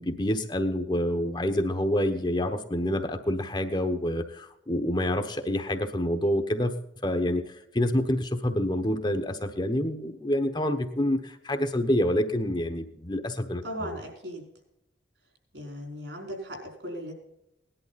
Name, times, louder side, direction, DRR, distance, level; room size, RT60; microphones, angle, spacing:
voice 1, 0.0-13.9, left 1 dB, 25° left, 6 dB, 1.0 m, -27 dB
voice 2, 13.6-14.5 15.5-17.1, equal, 70° right, 1 dB, 4.9 m, -37 dB
18.5 x 11.0 x 4.1 m, 0.82 s
head